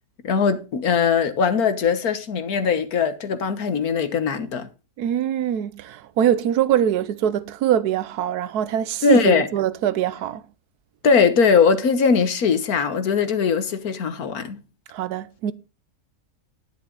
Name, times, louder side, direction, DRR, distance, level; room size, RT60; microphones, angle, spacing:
voice 1, 0.2-4.7 9.0-9.5 11.0-14.6, left 5 dB, 75° left, 1.7 m, -20 dB
voice 2, 5.0-10.4 14.9-15.5, right 10 dB, 85° right, 1.3 m, -23 dB
10.5 x 10.5 x 3.8 m
omnidirectional pair, 1.6 m